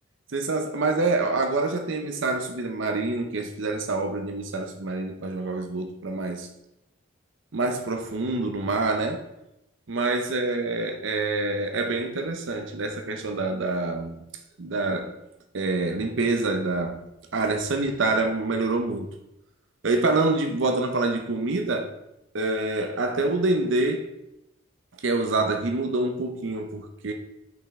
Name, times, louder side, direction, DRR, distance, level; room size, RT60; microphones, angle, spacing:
voice 1, 0.3-6.5 7.5-9.2 9.9-14.2 14.6-15.2 15.5-17.0 17.3-19.2 19.8-21.9 22.3-24.1 25.0-27.1, right 2 dB, 70° right, 5 dB, 0.6 m, -26 dB
5.8 x 5.2 x 3.6 m, 0.87 s
head